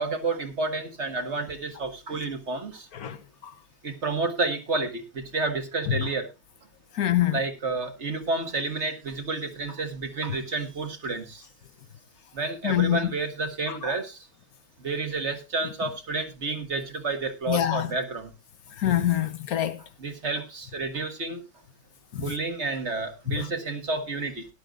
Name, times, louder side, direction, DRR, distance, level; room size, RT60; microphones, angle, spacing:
voice 1, 0.0-2.9 3.8-6.3 7.3-11.4 12.3-14.2 14.8-18.3 20.0-21.4 22.2-24.5, right 3 dB, 45° right, 1.9 m, -30 dB
voice 2, 6.9-7.4 12.6-13.1 13.7-14.0 17.5-17.9 18.8-19.8 22.1-22.2 23.3-23.5, left 12 dB, 70° left, 1.4 m, -25 dB
18.0 x 11.0 x 2.5 m
omnidirectional pair, 1.6 m